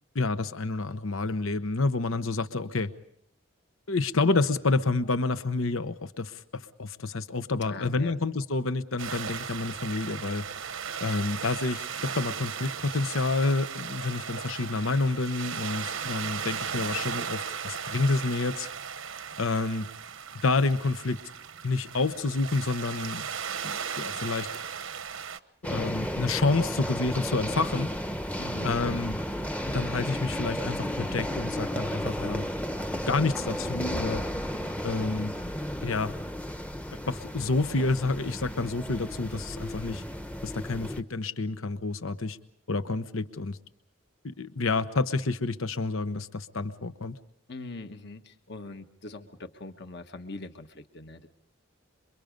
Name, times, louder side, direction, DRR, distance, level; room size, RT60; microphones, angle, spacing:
voice 1, 0.1-2.9 3.9-10.4 11.0-18.7 19.4-19.9 20.4-21.2 21.6-23.3 23.6-24.5 25.6-27.9 28.6-29.2 29.7-32.5 33.0-34.2 34.8-35.3 35.8-36.1 37.1-40.0 40.4-42.4 42.7-43.6 44.2-47.2, left 3 dB, 85° left, 11 dB, 1.0 m, -29 dB
voice 2, 7.6-8.2 28.4-28.8 47.5-51.3, left 2 dB, 55° left, 7 dB, 1.3 m, -42 dB
sound 1, 9.0-25.4, right 7 dB, 80° right, 1.0 m, -36 dB
sound 2, 25.6-41.0, equal, 5° left, 0.8 m, -33 dB
27.5 x 24.0 x 5.3 m, 0.70 s
head